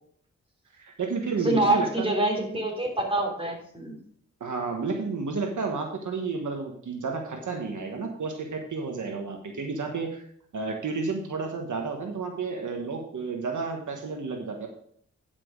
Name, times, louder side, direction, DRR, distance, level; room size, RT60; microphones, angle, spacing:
voice 1, 0.7-2.1 4.4-10.3 10.5-14.7, right 4 dB, 70° right, 2 dB, 1.3 m, -31 dB
voice 2, 1.4-4.0, right 2 dB, 15° right, 0 dB, 3.1 m, -26 dB
10.0 x 6.0 x 4.7 m, 0.63 s
cardioid pair, 85°, 32 cm